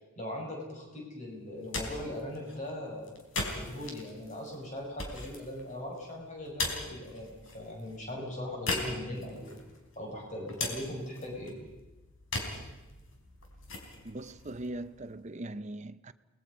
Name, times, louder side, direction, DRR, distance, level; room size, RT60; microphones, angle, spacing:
voice 1, 0.2-3.1 3.5-7.3 7.5-9.6 10.0-11.5, left 1 dB, 35° left, 6.0 m, -39 dB
sound 1, 1.4-15.4, left 2 dB, 75° left, 4.3 m, -40 dB
voice 2, 14.0-16.1, right 1 dB, 35° right, 0.6 m, -40 dB
29.5 x 20.0 x 5.5 m
head